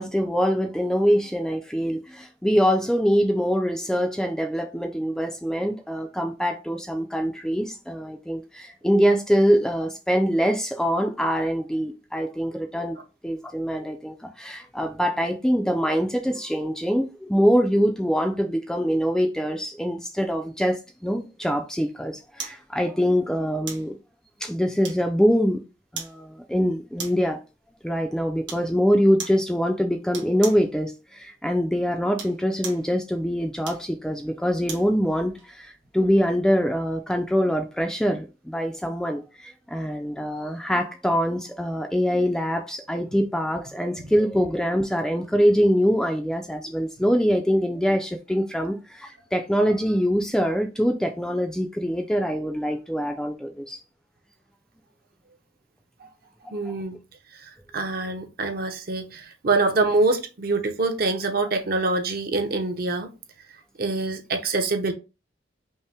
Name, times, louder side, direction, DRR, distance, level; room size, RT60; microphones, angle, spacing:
voice 1, 0.0-24.0 24.4-25.6 25.9-27.4 27.8-53.8 56.4-56.7, equal, 5° left, 0.3 m, -24 dB
sound 1, 22.4-22.6 23.7-23.9 24.8-25.3 26.0-26.2 27.0-27.3 28.5-28.7 29.2-29.4 30.1-30.7 32.0-32.9 33.6-34.9 35.4-35.5, right 6 dB, 75° right, 1.4 m, -37 dB
voice 2, 56.5-57.0 57.4-63.1 63.8-64.9, right 3 dB, 50° right, 0.7 m, -25 dB
5.4 x 2.1 x 3.3 m
head